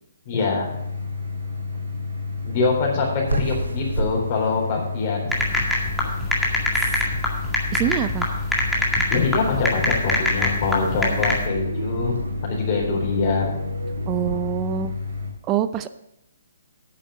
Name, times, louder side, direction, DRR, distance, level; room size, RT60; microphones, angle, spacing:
voice 1, 0.3-0.7 2.4-5.5 9.1-12.1 12.4-13.5, left 4 dB, 40° left, -2 dB, 3.9 m, -24 dB
sound 1, 0.6-15.3, left 4 dB, 70° right, 4.4 m, -30 dB
sound 2, 3.3-14.4, right 3 dB, 85° right, 1.3 m, -34 dB
sound 3, 5.3-11.5, left 1 dB, ahead, 2.0 m, -24 dB
voice 2, 7.7-8.3 14.1-14.9 15.5-15.9, right 10 dB, 25° right, 13 dB, 0.5 m, -25 dB
9.2 x 7.2 x 6.3 m, 0.83 s
hypercardioid pair, 140°, 0 cm